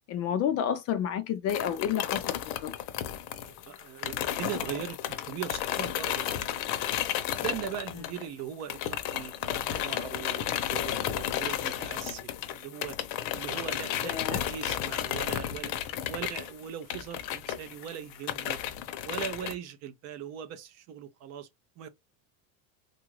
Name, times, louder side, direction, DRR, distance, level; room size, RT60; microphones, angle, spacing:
voice 1, 0.1-2.7 14.0-14.4, left 9 dB, 35° left, 0.4 m, -30 dB
sound 1, 1.5-8.4 8.7-19.5, left 11 dB, 60° left, 0.7 m, -33 dB
voice 2, 3.3-6.9 7.4-13.0 13.3-15.7 16.1-18.6 19.0-21.5 21.8-21.9, right 9 dB, 35° right, 0.4 m, -40 dB
3.7 x 2.4 x 3.0 m
supercardioid pair, 140°, 47 cm